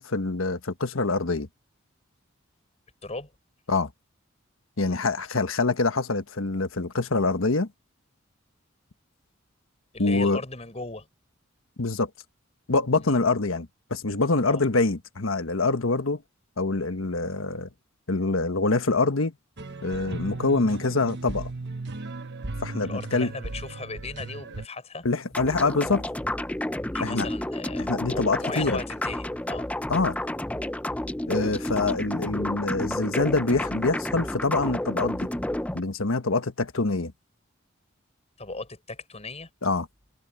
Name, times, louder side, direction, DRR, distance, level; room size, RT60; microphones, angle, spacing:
voice 1, 0.0-1.5 3.7-3.9 4.8-7.7 10.0-10.4 11.8-12.1 12.7-16.2 16.6-17.7 18.1-19.3 19.8-21.5 22.6-23.3 25.0-26.0 27.0-27.3 27.8-28.8 29.9-30.2 31.3-35.3 35.7-37.1 39.6-39.9, left 3 dB, 80° left, 1.3 m, -25 dB
voice 2, 9.9-11.1 12.9-13.1 14.4-14.6 22.8-25.1 26.8-29.7 38.4-39.5, left 3 dB, 30° left, 6.0 m, -37 dB
sound 1, 19.6-24.7, right 2 dB, 55° right, 1.3 m, -36 dB
sound 2, 25.3-35.8, left 1 dB, 5° left, 0.6 m, -30 dB
head